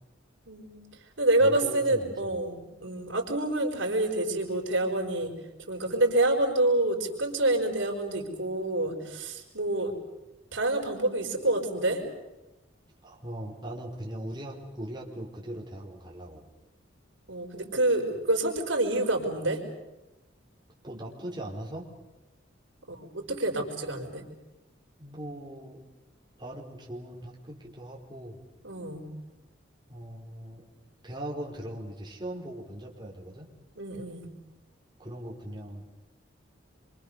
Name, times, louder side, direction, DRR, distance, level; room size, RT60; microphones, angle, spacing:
voice 1, 0.5-0.8 1.2-2.5 2.8-5.3 5.7-9.9 10.5-12.0 17.3-19.6 22.9-24.2 28.6-29.0 33.8-34.2, right 2 dB, 90° right, 3 dB, 4.9 m, -27 dB
voice 2, 1.4-2.4 13.0-16.5 20.8-21.9 25.0-25.8 26.4-28.4 29.9-30.6 31.0-33.5 35.0-35.8, right 1 dB, 25° right, -3 dB, 4.9 m, -40 dB
27.0 x 25.5 x 6.9 m, 1.0 s
head